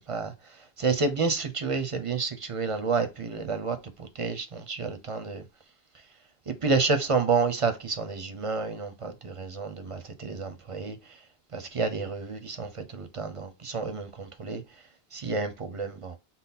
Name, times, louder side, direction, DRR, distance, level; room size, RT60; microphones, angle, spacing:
voice 1, 0.8-5.4 6.5-11.0 11.5-14.6 15.1-16.2, right 4 dB, 40° right, 0.5 m, -29 dB
5.6 x 2.0 x 4.1 m
omnidirectional pair, 1.2 m